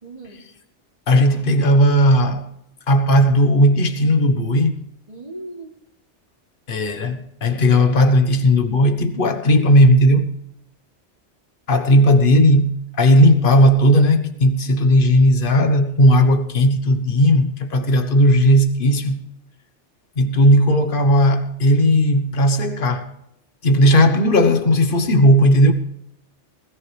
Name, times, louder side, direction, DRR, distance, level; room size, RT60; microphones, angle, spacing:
voice 1, 0.0-0.4 5.1-5.7 23.8-24.3, right 2 dB, 30° right, 2.9 m, -37 dB
voice 2, 1.1-2.4 2.9-4.8 6.7-10.3 11.7-19.2 20.2-23.1 23.6-25.7, equal, 50° left, 1.4 m, -15 dB
21.0 x 13.5 x 3.3 m
omnidirectional pair, 1.2 m